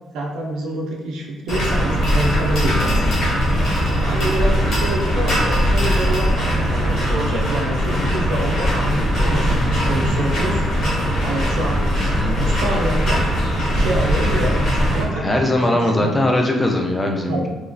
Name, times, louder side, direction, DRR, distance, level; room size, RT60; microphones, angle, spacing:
voice 1, 0.1-3.0 4.0-10.6 11.2-13.3 13.7-16.1 17.3-17.5, right 2 dB, 85° right, -1 dB, 0.5 m, -27 dB
sound 1, 1.5-15.0, equal, 45° left, 0.9 m, -20 dB
voice 2, 12.0-12.4 15.1-17.5, left 1 dB, 10° left, 1 dB, 0.3 m, -20 dB
2.9 x 2.3 x 2.5 m, 1.1 s
cardioid pair, 175°, 0 cm